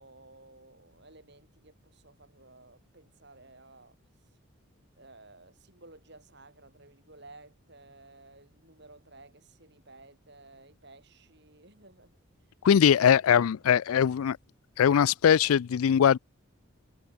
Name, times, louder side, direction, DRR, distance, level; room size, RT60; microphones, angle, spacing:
voice 1, 0.0-4.0 5.0-12.2 13.3-13.5, right 2 dB, 50° right, 7.6 m, -54 dB
voice 2, 12.6-14.4 14.8-16.2, left 8 dB, 80° left, 0.4 m, -21 dB
head